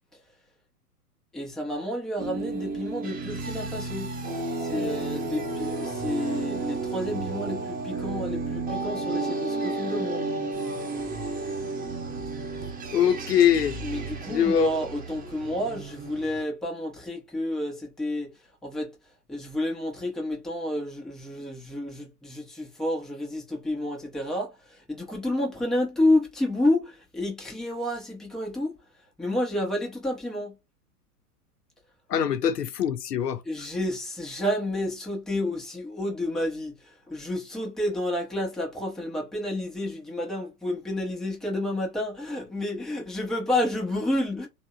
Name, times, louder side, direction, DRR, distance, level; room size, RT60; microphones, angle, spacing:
voice 1, 1.3-4.1 4.6-10.3 13.8-19.0 19.3-28.8 29.2-30.6 33.4-44.5, left 1 dB, ahead, 0.5 m, -30 dB
sound 1, 2.2-16.4, right 3 dB, 20° right, 0.9 m, -32 dB
voice 2, 12.9-13.8 14.3-14.7 32.1-33.4, left 9 dB, 85° left, 0.6 m, -22 dB
3.4 x 2.1 x 2.3 m
figure-of-eight pair, 105°, 47 cm